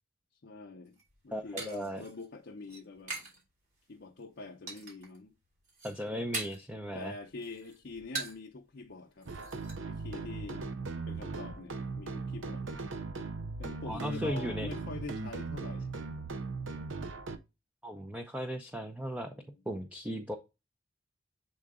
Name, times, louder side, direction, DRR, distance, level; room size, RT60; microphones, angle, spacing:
voice 1, 0.4-1.0 1.2-3.2 3.9-5.3 6.9-9.3 9.9-10.7 11.1-12.9 13.6-15.9 19.3-19.6, left 3 dB, 60° left, 0.6 m, -45 dB
sound 1, 0.9-3.4 3.7-4.2 4.7-5.2 5.5-6.8 7.1-8.5 8.8-8.9 9.2-9.7, right 3 dB, 40° right, 3.0 m, -42 dB
voice 2, 1.3-2.0 5.8-7.1 13.9-14.7 17.8-19.3 19.7-20.4, equal, 5° right, 0.6 m, -36 dB
sound 2, 9.3-17.4, right 3 dB, 80° right, 0.7 m, -39 dB
7.7 x 3.8 x 3.6 m
head